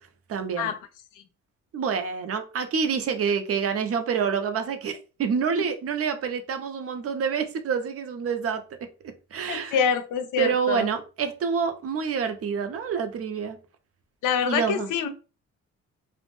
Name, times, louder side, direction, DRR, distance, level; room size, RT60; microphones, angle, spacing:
voice 1, 0.3-0.7 1.7-8.6 9.0-9.8 10.4-13.6 14.4-14.9, right 6 dB, 50° right, 0.5 m, -27 dB
voice 2, 9.5-10.9 14.2-15.1, left 7 dB, 90° left, 0.5 m, -26 dB
2.5 x 2.1 x 3.0 m
cardioid pair, 90°, 30 cm